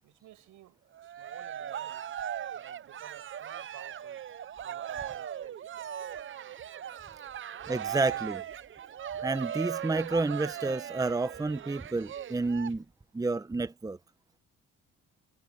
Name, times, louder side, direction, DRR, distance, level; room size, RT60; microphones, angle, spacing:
voice 1, 0.0-2.1 2.5-4.2 4.6-5.9 7.0-7.2 7.6-7.7, right 14 dB, 85° right, 7.8 m, -54 dB
Cheering, 0.9-12.7, right 9 dB, 40° right, 0.6 m, -39 dB
voice 2, 7.7-8.4 9.2-12.8 13.1-14.0, right 3 dB, 10° right, 0.8 m, -30 dB
cardioid pair, 90°, 30 cm